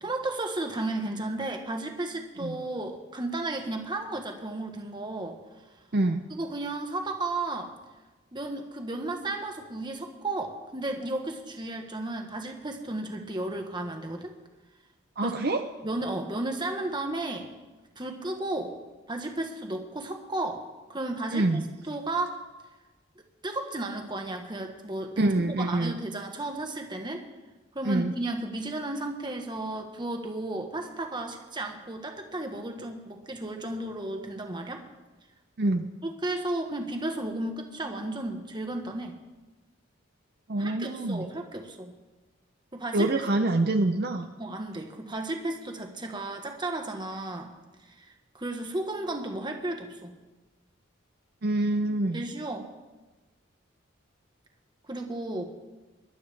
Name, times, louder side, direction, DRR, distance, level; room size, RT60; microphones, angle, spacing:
voice 1, 0.0-5.4 6.3-7.7 8.3-14.4 15.2-15.4 15.8-17.5 18.0-18.7 19.1-22.4 23.4-27.2 27.7-34.8 36.0-39.2 40.6-41.9 42.7-43.1 43.5-43.6 44.4-47.5 48.0-50.2 52.1-52.7 54.9-55.4, right 2 dB, 20° right, 3 dB, 1.3 m, -33 dB
voice 2, 5.9-6.2 15.2-15.6 21.3-21.7 25.2-26.0 27.8-28.1 35.6-35.9 40.5-41.3 42.9-44.3 51.4-52.2, right 2 dB, 50° right, 5 dB, 0.6 m, -26 dB
22.0 x 11.5 x 3.4 m, 1.2 s
head